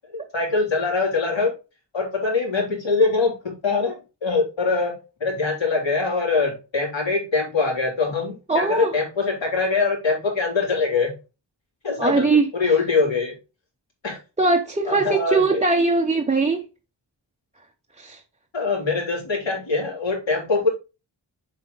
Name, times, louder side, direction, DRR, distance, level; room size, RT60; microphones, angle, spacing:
voice 1, 0.1-1.5 1.9-11.2 11.8-13.4 14.0-14.2 14.8-15.6 18.5-20.7, left 4 dB, 70° left, 4.0 m, -23 dB
voice 2, 8.5-8.9 12.0-12.5 14.4-16.6 18.0-18.2, right 3 dB, 15° right, 0.6 m, -20 dB
7.5 x 4.7 x 3.9 m
wide cardioid pair, 150°, 46 cm